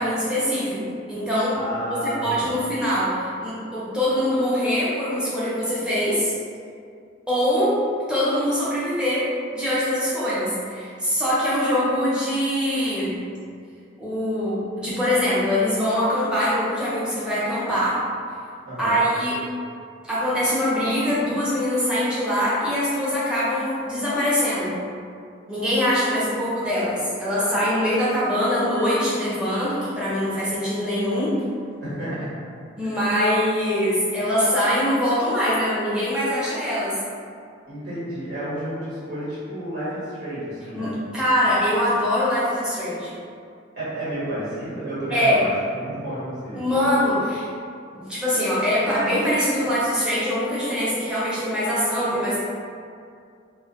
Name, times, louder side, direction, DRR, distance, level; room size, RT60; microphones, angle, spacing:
voice 1, 0.0-1.6 1.9-6.3 7.3-7.8 8.1-13.1 14.0-18.0 18.8-19.4 20.0-24.8 25.5-31.4 32.8-37.0 40.7-43.1 45.1-45.4 46.5-47.5 47.9-52.4, equal, 5° right, -10 dB, 0.6 m, -23 dB
voice 2, 1.5-2.5 18.6-19.0 31.8-32.3 32.8-33.0 37.7-41.0 43.7-46.8, right 1 dB, 55° right, -11 dB, 1.1 m, -31 dB
2.3 x 2.2 x 3.7 m, 2.3 s
head